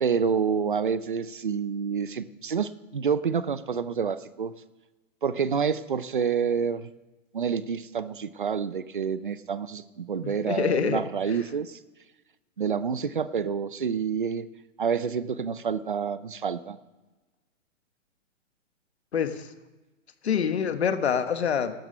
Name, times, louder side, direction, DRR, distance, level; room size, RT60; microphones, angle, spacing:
voice 1, 0.0-4.5 5.2-6.9 7.3-11.8 12.6-14.5 14.8-16.8, right 6 dB, 40° right, 15 dB, 0.6 m, -28 dB
voice 2, 10.5-11.0 19.1-19.5 20.2-21.7, left 7 dB, 50° left, 9 dB, 1.4 m, -25 dB
15.5 x 12.5 x 5.6 m, 1.1 s
hypercardioid pair, 180°, 41 cm